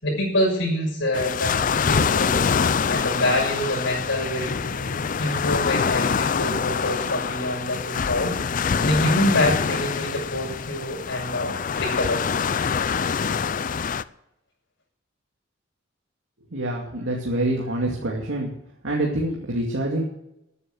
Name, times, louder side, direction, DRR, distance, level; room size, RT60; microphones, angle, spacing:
voice 1, 0.0-2.4 2.9-8.4 8.8-12.2, left 1 dB, 70° left, -3 dB, 6.2 m, -26 dB
sound 1, 1.1-14.0, left 6 dB, 40° left, 0.5 m, -25 dB
voice 2, 16.5-18.5 18.8-20.0, right 1 dB, 85° right, -2 dB, 2.4 m, -26 dB
13.0 x 9.7 x 6.5 m, 0.82 s
head